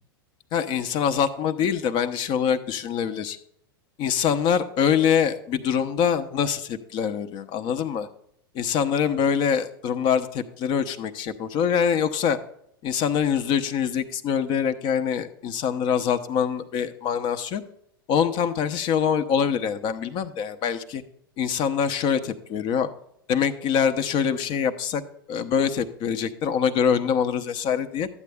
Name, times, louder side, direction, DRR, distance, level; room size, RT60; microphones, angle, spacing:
voice 1, 0.5-3.4 4.0-8.1 8.5-12.4 12.8-17.6 18.1-21.0 21.4-22.9 23.3-25.0 25.3-28.1, left 7 dB, 40° left, 10 dB, 0.9 m, -24 dB
12.5 x 8.4 x 3.5 m, 0.72 s
figure-of-eight pair, 95°, 12 cm